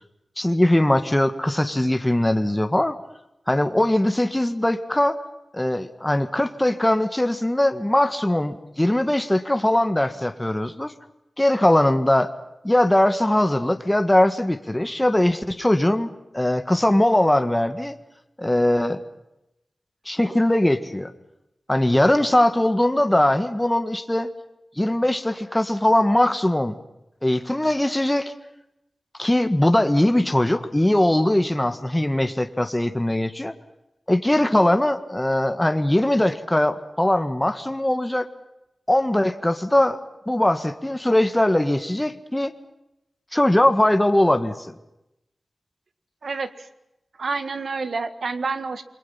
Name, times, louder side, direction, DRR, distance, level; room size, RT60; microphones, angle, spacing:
voice 1, 0.4-3.0 3.5-5.2 5.5-10.9 11.4-12.3 12.6-18.0 18.4-19.0 20.1-21.1 21.7-24.3 24.8-26.8 27.2-28.3 29.2-33.5 34.1-38.3 38.9-40.0 40.3-42.5 43.3-44.7, left 1 dB, 15° left, 8 dB, 1.7 m, -20 dB
voice 2, 46.2-46.7 47.2-48.8, right 4 dB, 80° right, 10 dB, 1.8 m, -28 dB
28.5 x 23.0 x 5.8 m, 0.88 s
wide cardioid pair, 80°, 0 cm